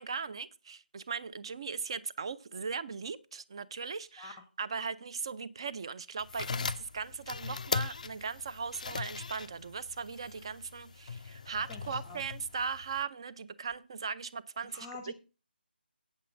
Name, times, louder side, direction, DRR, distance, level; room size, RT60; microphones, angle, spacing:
voice 1, 0.0-14.9, right 5 dB, 30° right, 0.5 m, -38 dB
sound 1, 6.2-13.0, left 5 dB, 45° left, 0.4 m, -39 dB
voice 2, 11.7-12.2 14.7-15.1, left 4 dB, ahead, 0.8 m, -47 dB
8.6 x 7.4 x 5.0 m
figure-of-eight pair, 170°, 6 cm